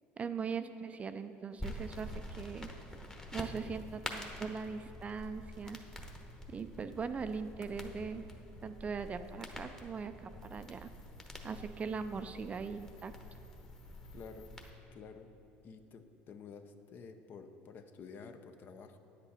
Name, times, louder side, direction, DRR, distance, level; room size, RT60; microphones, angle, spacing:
voice 1, 0.2-2.7 3.3-5.8 6.5-8.2 8.6-10.9 11.4-13.1, right 5 dB, 30° right, 10 dB, 0.4 m, -40 dB
sound 1, 1.6-14.7, left 1 dB, 15° left, 1.1 m, -47 dB
voice 2, 14.1-14.6 14.9-15.3 15.6-19.0, left 5 dB, 45° left, 8 dB, 0.7 m, -51 dB
9.8 x 8.1 x 4.2 m, 2.8 s
supercardioid pair, 105°, 5 cm